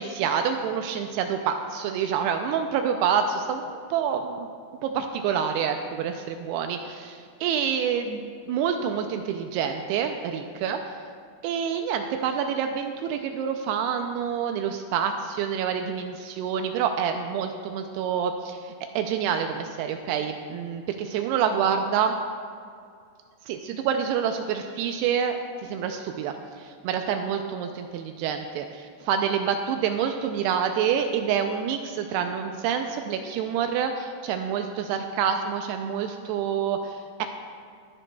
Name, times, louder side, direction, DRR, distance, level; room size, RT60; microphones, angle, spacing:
voice 1, 0.0-4.5 4.8-8.2 8.5-10.9 11.4-22.1 23.5-37.3, right 7 dB, 85° right, 6 dB, 2.4 m, -27 dB
18.0 x 10.5 x 2.3 m, 2.3 s
omnidirectional pair, 5.1 m